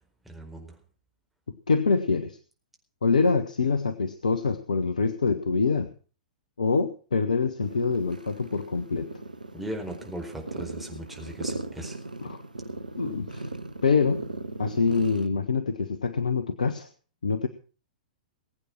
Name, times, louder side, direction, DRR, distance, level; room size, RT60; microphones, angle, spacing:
voice 1, 0.2-0.8 9.5-12.0, right 1 dB, 5° right, 1 dB, 4.4 m, -38 dB
voice 2, 1.7-2.4 3.0-5.9 6.6-9.1 12.2-12.4 13.0-13.5 13.8-14.2 14.6-16.9 17.2-17.5, left 4 dB, 70° left, 12 dB, 1.1 m, -25 dB
sound 1, 7.6-15.3, right 2 dB, 80° right, 1.0 m, -38 dB
20.5 x 8.7 x 6.1 m, 0.38 s
figure-of-eight pair, 105°, 4 cm